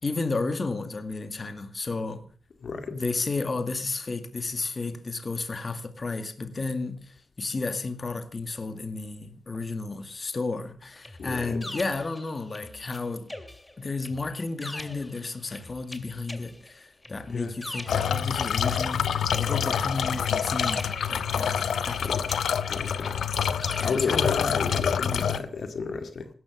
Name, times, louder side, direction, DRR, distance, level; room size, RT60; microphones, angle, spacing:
voice 1, 0.0-2.2 2.9-13.3 13.8-20.8 21.1-22.2 23.8-24.3 24.6-25.4, left 3 dB, 40° left, 9 dB, 2.0 m, -32 dB
voice 2, 2.6-3.0 11.2-11.6 17.3-17.5 22.0-22.1 22.7-23.2 23.8-26.3, left 5 dB, 65° left, 8 dB, 2.1 m, -32 dB
sound 1, 11.0-13.0 13.3-19.0 19.3-21.5 21.9-24.2, left 1 dB, 15° left, 2.4 m, -43 dB
sound 2, 17.9-25.4, left 8 dB, 85° left, 1.2 m, -27 dB
17.0 x 13.0 x 6.4 m, 0.44 s
cardioid pair, 85°, 0 cm